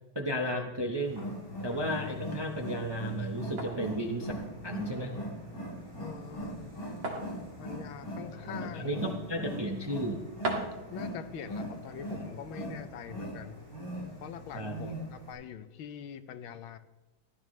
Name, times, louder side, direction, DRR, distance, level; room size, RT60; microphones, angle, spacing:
voice 1, 0.1-1.3 1.6-4.3 4.6-5.1 8.6-10.2 14.5-14.8, equal, 20° right, 2 dB, 0.6 m, -34 dB
Wild animals, 1.0-15.3, equal, 40° left, 5.3 m, -40 dB
sound 1, 1.6-13.4, right 2 dB, 70° right, 2.7 m, -44 dB
voice 2, 6.0-6.7 7.6-9.2 10.9-13.6 14.2-16.8, left 8 dB, 85° left, 10 dB, 1.6 m, -43 dB
15.5 x 12.5 x 3.2 m, 1.1 s
omnidirectional pair, 2.2 m